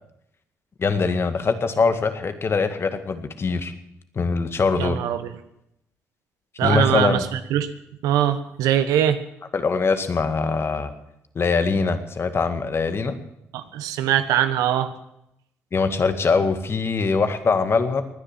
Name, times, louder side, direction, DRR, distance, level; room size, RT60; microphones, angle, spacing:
voice 1, 0.8-3.7 4.2-5.0 6.6-7.2 9.5-10.9 11.4-13.2 15.7-18.0, left 4 dB, 45° left, 9 dB, 2.0 m, -22 dB
voice 2, 4.8-5.3 6.6-7.7 8.0-9.2 13.5-14.9, right 10 dB, 85° right, 11 dB, 1.1 m, -22 dB
19.5 x 10.0 x 7.4 m, 0.79 s
supercardioid pair, 60°, 6 cm